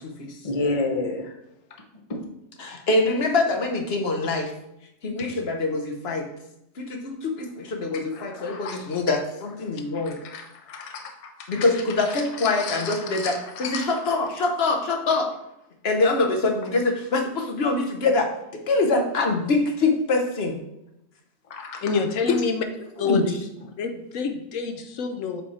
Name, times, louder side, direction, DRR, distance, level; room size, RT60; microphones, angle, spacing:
voice 1, 0.4-1.3 2.1-2.2 8.1-8.8 10.0-11.1 11.5-11.6 12.4-13.4 13.6-13.9 21.5-21.8, left 3 dB, 35° left, 2 dB, 0.7 m, -31 dB
voice 2, 2.6-4.5 5.0-6.3 6.8-10.2 11.5-15.3 15.8-18.3 18.7-20.6 23.0-23.2, left 3 dB, 55° left, 3 dB, 1.1 m, -24 dB
voice 3, 21.8-22.6 23.0-23.2 23.8-25.4, left 5 dB, 75° left, 6 dB, 1.0 m, -27 dB
7.5 x 3.5 x 4.1 m, 0.84 s
omnidirectional pair, 1.4 m